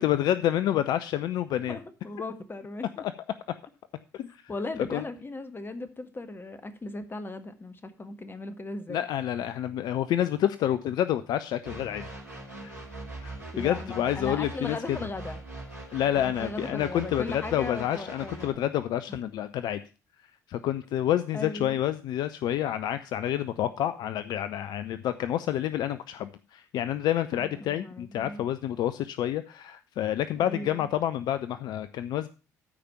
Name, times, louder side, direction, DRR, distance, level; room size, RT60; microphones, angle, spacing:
voice 1, 0.0-1.8 3.0-3.1 4.1-4.5 4.9-5.0 8.9-12.1 12.6-12.7 13.2-15.0 15.9-19.8 20.5-32.3, left 11 dB, 55° left, 13 dB, 0.5 m, -28 dB
voice 2, 1.7-3.0 4.5-9.1 13.5-15.4 16.1-18.6 19.1-19.2 21.3-21.8 27.3-28.4 30.3-30.9, left 2 dB, 25° left, 9 dB, 1.6 m, -38 dB
sound 1, 11.6-18.5, right 2 dB, 85° right, 3.3 m, -42 dB
13.5 x 5.1 x 5.7 m, 0.34 s
figure-of-eight pair, 50°, 9 cm